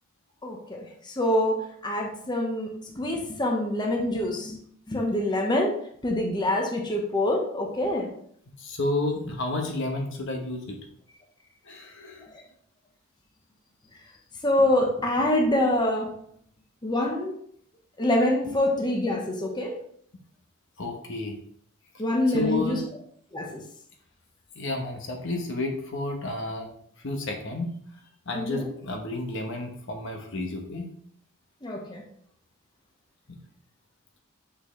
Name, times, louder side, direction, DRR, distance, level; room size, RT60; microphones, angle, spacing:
voice 1, 0.4-0.8 1.2-1.6 1.8-2.7 3.0-4.6 4.9-5.7 6.0-8.1 14.4-16.1 16.8-17.3 18.0-19.8 22.0-22.8 23.3-23.5 28.3-28.6 31.6-32.0, left 1 dB, 20° left, 0 dB, 1.0 m, -25 dB
voice 2, 8.6-10.8 11.6-12.3 20.8-21.4 22.3-22.8 24.5-26.7 27.0-27.7 28.3-30.9, left 2 dB, 60° left, 3 dB, 1.1 m, -31 dB
6.0 x 6.0 x 3.2 m, 0.64 s
head